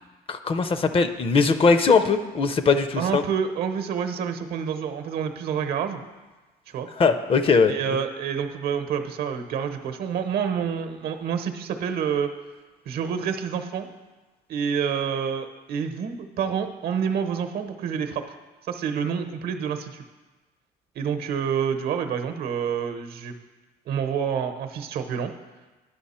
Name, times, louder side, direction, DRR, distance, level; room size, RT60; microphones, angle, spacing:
voice 1, 0.3-3.2 7.0-7.7, left 4 dB, 35° left, 10 dB, 0.5 m, -20 dB
voice 2, 3.0-6.0 6.7-6.9 7.7-12.3 12.9-13.9 14.5-18.2 18.7-20.0 20.9-23.3 23.9-25.3, right 7 dB, 65° right, 7 dB, 0.8 m, -28 dB
10.5 x 6.0 x 4.3 m, 1.2 s
cardioid pair, 110°, 17 cm